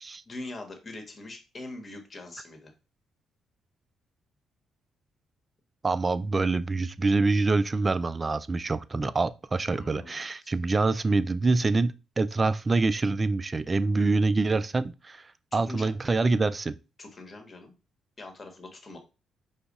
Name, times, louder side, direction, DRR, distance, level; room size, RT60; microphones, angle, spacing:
voice 1, 0.2-2.7 9.7-10.5 15.7-15.9 17.0-17.7 18.2-19.0, left 2 dB, 35° left, 1.2 m, -42 dB
voice 2, 5.8-16.8, right 3 dB, 25° right, 0.3 m, -26 dB
4.9 x 2.3 x 4.0 m
cardioid pair, 90°, 0 cm